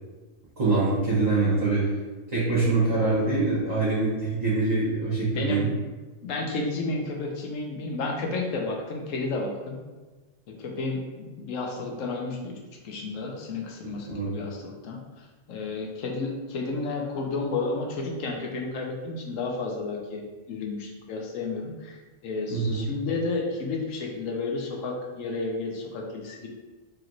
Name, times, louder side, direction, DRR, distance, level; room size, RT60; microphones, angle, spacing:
voice 1, 0.6-1.8 2.3-5.7 14.1-14.3 22.5-22.9, right 3 dB, 35° right, -8 dB, 1.0 m, -24 dB
voice 2, 5.2-5.6 6.2-9.8 10.6-12.5 12.8-15.0 15.5-26.5, left 3 dB, 85° left, 1 dB, 1.1 m, -31 dB
4.4 x 2.9 x 2.5 m, 1.2 s
omnidirectional pair, 1.3 m